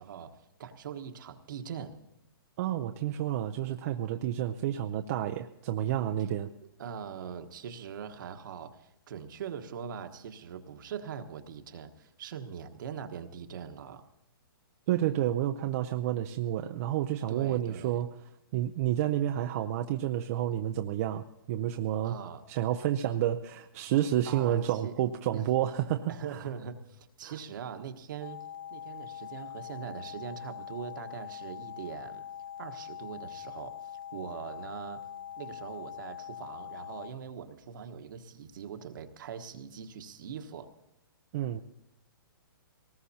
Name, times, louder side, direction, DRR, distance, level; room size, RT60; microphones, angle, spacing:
voice 1, 0.0-2.0 6.8-14.1 17.3-18.0 22.0-22.4 24.2-24.9 25.3-25.5 26.1-28.4 28.7-32.2 32.6-35.0 35.4-40.7, right 7 dB, 60° right, 7 dB, 1.4 m, -42 dB
voice 2, 2.6-6.5 14.9-18.1 18.5-22.2 22.5-26.4 27.2-27.3 41.3-41.6, right 12 dB, 40° right, 5 dB, 0.6 m, -30 dB
sound 1, 28.2-37.1, left 9 dB, 75° left, 1.2 m, -43 dB
22.0 x 19.0 x 2.8 m, 0.84 s
hypercardioid pair, 145°, 12 cm